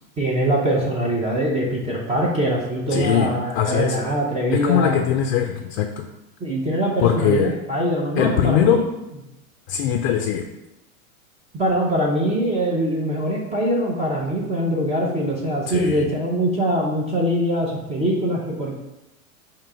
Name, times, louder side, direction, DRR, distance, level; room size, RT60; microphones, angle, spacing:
voice 1, 0.2-5.0 6.4-8.9 11.5-18.8, right 1 dB, 15° right, -4 dB, 0.6 m, -23 dB
voice 2, 2.9-4.0 4.6-6.1 7.0-7.5 8.2-8.8 9.7-10.4 15.7-16.1, left 9 dB, 50° left, 4 dB, 0.4 m, -21 dB
3.7 x 2.8 x 4.5 m, 0.92 s
hypercardioid pair, 110°, 44 cm